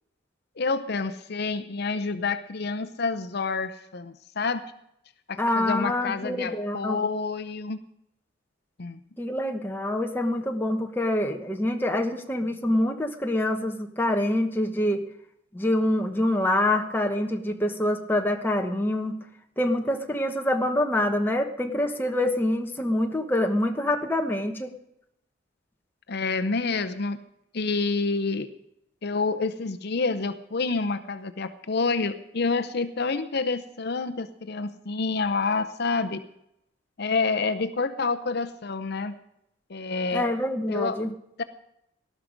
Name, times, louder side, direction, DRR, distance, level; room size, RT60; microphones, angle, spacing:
voice 1, 0.6-4.6 5.3-7.8 8.8-9.0 26.1-27.2 27.5-28.5 29.0-36.2 37.0-39.1 39.7-40.2 40.7-41.4, left 4 dB, 55° left, 10 dB, 0.7 m, -28 dB
voice 2, 5.4-7.0 9.2-15.0 15.5-19.1 19.6-24.7 40.1-41.1, left 1 dB, 10° left, 3 dB, 1.2 m, -26 dB
18.5 x 12.0 x 5.2 m, 0.80 s
head